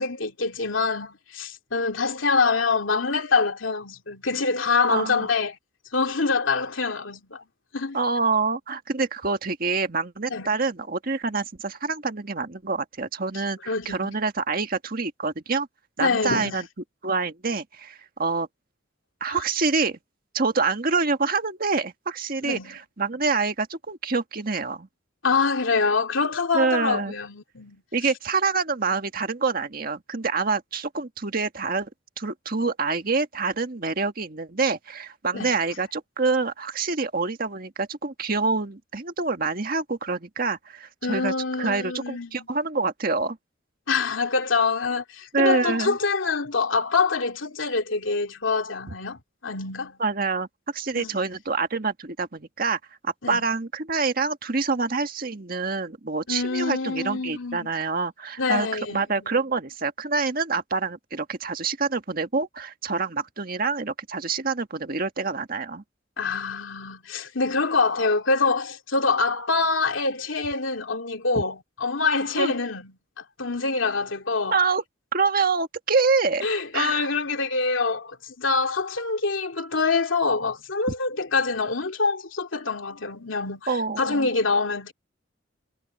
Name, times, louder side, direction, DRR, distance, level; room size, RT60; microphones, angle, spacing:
voice 1, 0.0-5.6 5.9-7.4 7.7-8.0 10.3-10.5 13.7-14.2 16.0-16.7 19.3-19.4 22.4-22.8 25.2-27.8 35.3-35.6 41.0-42.5 43.9-50.0 50.9-51.2 53.2-53.4 56.3-57.7 58.4-59.3 66.2-74.6 76.4-83.7 84.0-84.9, left 4 dB, 85° left, 2.6 m, -25 dB
voice 2, 4.9-5.3 7.9-15.7 16.0-16.6 17.0-18.5 19.2-20.0 20.3-24.9 26.5-27.1 27.9-31.9 32.2-43.4 45.3-46.0 50.0-50.5 50.7-65.8 72.4-72.5 74.5-74.8 75.1-76.5 76.7-77.1 83.7-84.3, right 4 dB, 50° right, 1.7 m, -26 dB
head